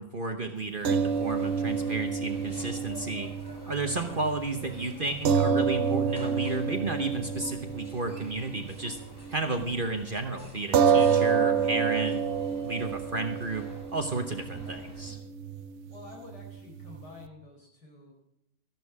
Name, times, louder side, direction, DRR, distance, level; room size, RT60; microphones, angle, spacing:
voice 1, 0.0-3.3 3.7-9.0 9.3-12.2 12.6-13.7 13.9-15.2, right 2 dB, 40° right, 5 dB, 1.0 m, -32 dB
sound 1, 0.8-15.2, equal, 15° left, 2.8 m, -49 dB
sound 2, 0.9-9.4 9.7-9.8 10.7-17.3, right 6 dB, 60° right, 0.8 m, -29 dB
voice 2, 15.9-18.1, left 3 dB, 80° left, 0 dB, 4.9 m, -48 dB
14.0 x 11.5 x 4.8 m, 0.81 s
omnidirectional pair, 1.8 m